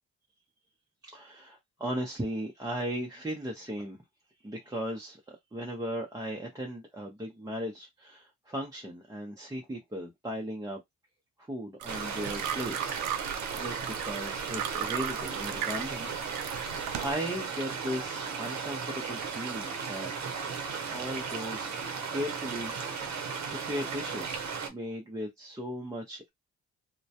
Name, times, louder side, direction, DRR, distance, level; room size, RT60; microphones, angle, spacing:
voice 1, 1.1-4.0 4.4-10.8 11.4-13.0 13.5-20.3 20.9-21.7 22.1-22.7 23.0-26.3, equal, 10° right, 0.6 m, -37 dB
sound 1, 11.8-17.1, right 9 dB, 90° right, 0.5 m, -37 dB
sound 2, 11.9-24.7, right 5 dB, 65° right, 0.8 m, -36 dB
2.1 x 2.1 x 2.7 m
cardioid pair, 90°, 30 cm